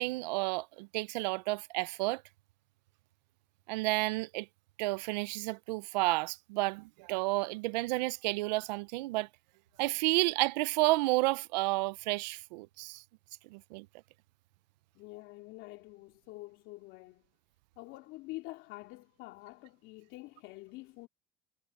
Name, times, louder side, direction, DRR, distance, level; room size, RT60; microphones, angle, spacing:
voice 1, 0.0-2.2 3.7-4.5 4.8-9.3 9.8-13.0 13.5-13.9, right 21 dB, 85° right, 0.7 m, -31 dB
voice 2, 14.9-17.2 17.8-21.1, left 20 dB, 70° left, 3.1 m, -47 dB
supercardioid pair, 105°, 21 cm